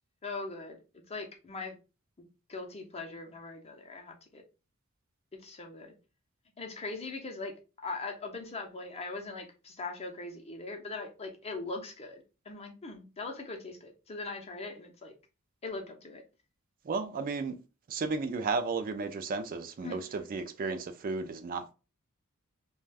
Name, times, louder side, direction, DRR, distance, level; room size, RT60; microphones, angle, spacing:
voice 1, 0.2-1.8 2.2-4.4 5.4-5.9 6.6-7.5 7.8-15.1 15.6-16.2 19.8-20.2, left 3 dB, 30° left, 0.6 m, -41 dB
voice 2, 16.9-17.5 17.9-21.6, right 4 dB, 40° right, 0.3 m, -33 dB
2.4 x 2.2 x 3.3 m
head